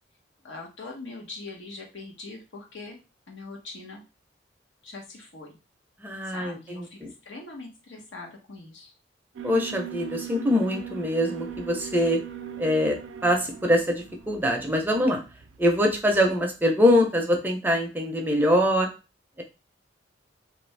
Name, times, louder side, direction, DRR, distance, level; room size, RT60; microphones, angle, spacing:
voice 1, 0.4-3.0 3.3-4.0 4.8-5.6 6.2-8.9, left 3 dB, 85° left, 0 dB, 0.9 m, -42 dB
voice 2, 6.0-7.1 9.4-12.2 12.6-13.0 13.2-15.2 15.6-18.9, left 1 dB, 10° right, 2 dB, 0.5 m, -23 dB
Alarm, 9.3-16.5, right 8 dB, 85° right, 0.4 m, -40 dB
2.7 x 2.5 x 3.2 m, 0.30 s
head